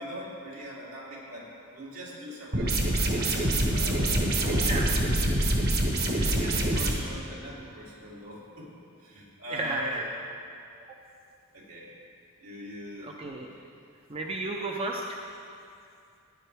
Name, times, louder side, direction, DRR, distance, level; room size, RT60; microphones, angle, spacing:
voice 1, 0.0-5.0 6.1-8.7 9.0-10.0 11.5-11.9 12.4-13.1 13.5-13.7, equal, 75° right, -5 dB, 3.2 m, -42 dB
sound 1, 2.5-6.9, right 1 dB, 45° right, 1.3 m, -25 dB
voice 2, 9.5-10.1 13.0-13.5 14.1-15.2, right 2 dB, 25° right, 1 dB, 0.6 m, -32 dB
15.5 x 10.0 x 3.4 m, 2.5 s
head